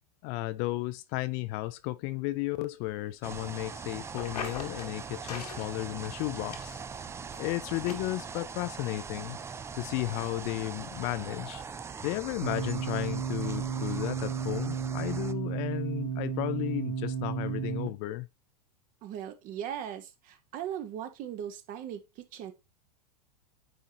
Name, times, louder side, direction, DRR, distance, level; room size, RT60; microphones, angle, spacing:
voice 1, 0.2-6.8 7.4-9.4 9.7-11.6 12.0-18.3, left 18 dB, 45° left, 0.6 m, -34 dB
sound 1, 3.2-15.3, right 5 dB, 15° right, 0.4 m, -41 dB
sound 2, 4.2-4.9 5.3-5.7 6.0-6.9 7.3-7.4 7.8-7.9, left 6 dB, 80° left, 1.6 m, -40 dB
sound 3, 12.4-17.9, right 7 dB, 70° right, 1.6 m, -33 dB
voice 2, 19.0-22.5, right 9 dB, 40° right, 1.2 m, -39 dB
9.2 x 3.7 x 2.9 m
hypercardioid pair, 95°, 20 cm